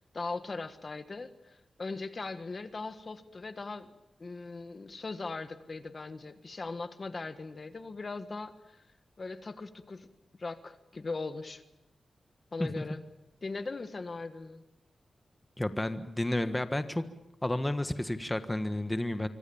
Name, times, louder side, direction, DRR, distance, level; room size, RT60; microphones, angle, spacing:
voice 1, 0.0-3.9 4.2-8.8 9.2-10.1 10.4-11.6 12.5-13.0 13.4-14.6, left 3 dB, 40° left, 10 dB, 1.5 m, -39 dB
voice 2, 15.6-17.0 17.4-19.3, left 1 dB, 15° left, 9 dB, 1.5 m, -31 dB
25.5 x 25.0 x 7.2 m, 0.87 s
wide cardioid pair, 100°, 0 cm